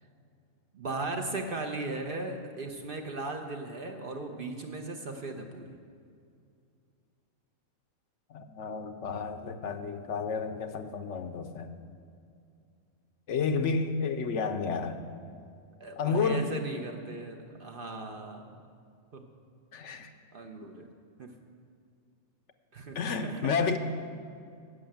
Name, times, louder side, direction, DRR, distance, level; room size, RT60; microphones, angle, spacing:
voice 1, 0.7-5.8 15.8-18.6 19.1-19.2 20.3-20.9 21.2-21.3 22.7-23.5, right 2 dB, 50° right, 4 dB, 0.8 m, -37 dB
voice 2, 8.3-11.7 13.3-15.0 16.0-16.5 19.7-20.1 22.9-23.8, left 5 dB, 65° left, 8 dB, 0.9 m, -31 dB
11.0 x 6.5 x 8.7 m, 2.4 s
omnidirectional pair, 1.4 m